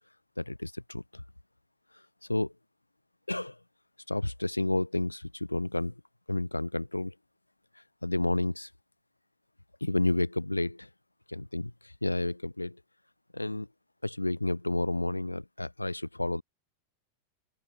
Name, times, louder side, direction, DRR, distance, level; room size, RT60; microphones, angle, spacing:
voice 1, 0.4-1.2 2.3-2.5 3.3-3.6 4.1-5.9 6.3-7.1 8.0-8.7 9.8-10.9 11.3-12.8 13.3-13.7 14.0-16.4, left 1 dB, 85° left, 3.3 m, -30 dB
open air
figure-of-eight pair, 90°, 0 cm